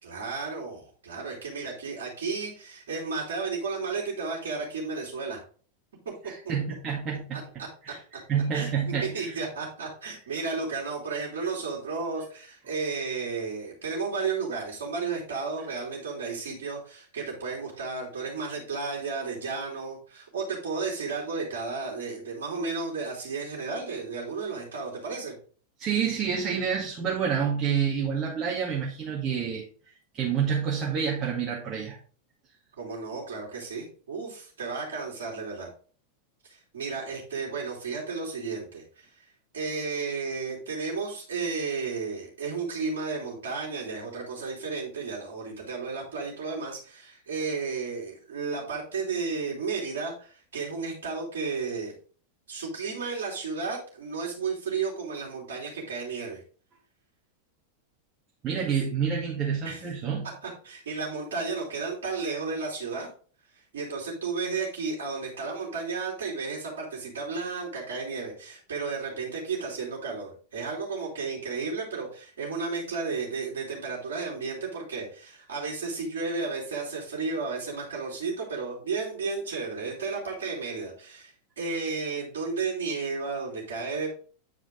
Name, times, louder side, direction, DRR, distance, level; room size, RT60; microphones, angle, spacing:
voice 1, 0.0-5.4 7.6-7.7 8.5-25.3 32.8-35.7 36.4-39.1 39.5-51.9 52.5-56.4 59.6-59.9 60.4-63.1 63.7-84.1, right 4 dB, 60° right, -5 dB, 3.0 m, -33 dB
voice 2, 6.2-8.0 8.3-9.3 25.8-29.6 30.1-32.0 58.4-60.3, right 7 dB, 30° right, -4 dB, 2.0 m, -28 dB
9.0 x 5.0 x 3.8 m, 0.42 s
figure-of-eight pair, 90°, 0 cm